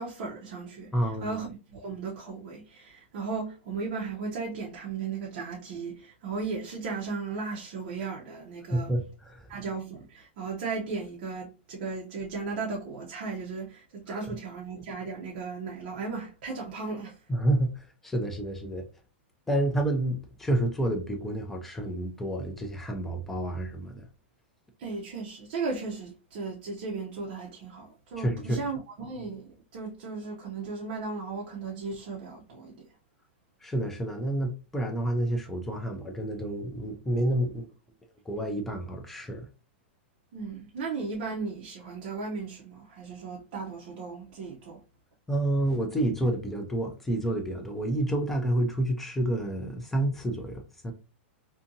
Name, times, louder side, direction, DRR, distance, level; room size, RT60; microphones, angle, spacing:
voice 1, 0.0-8.9 9.5-17.2 24.8-32.8 40.3-44.8, right 4 dB, 40° right, 0.6 m, -36 dB
voice 2, 0.9-1.4 8.7-9.5 14.1-14.4 17.3-18.9 19.5-24.0 28.2-28.7 33.6-37.7 38.3-39.5 45.3-50.9, right 1 dB, 5° left, 0.3 m, -29 dB
2.6 x 2.6 x 2.6 m
supercardioid pair, 170°, 6 cm